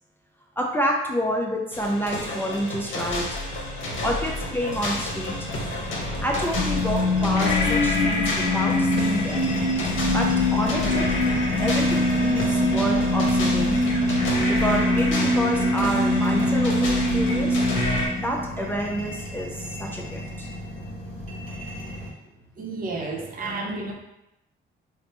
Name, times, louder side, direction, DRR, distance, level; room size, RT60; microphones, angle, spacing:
voice 1, 0.6-3.4 4.0-5.3 6.2-9.5 10.1-11.1 11.6-13.8 14.5-17.7 18.2-20.5, equal, 10° left, -1 dB, 0.4 m, -28 dB
sound 1, 1.7-18.1, left 1 dB, 70° left, 0.7 m, -29 dB
sound 2, 4.7-22.1, equal, 45° left, 1.2 m, -36 dB
sound 3, 6.5-18.7, left 1 dB, 15° right, 1.2 m, -23 dB
voice 2, 22.2-23.9, right 3 dB, 45° right, 0 dB, 0.6 m, -32 dB
3.1 x 2.0 x 2.9 m, 0.88 s
cardioid pair, 90°, 20 cm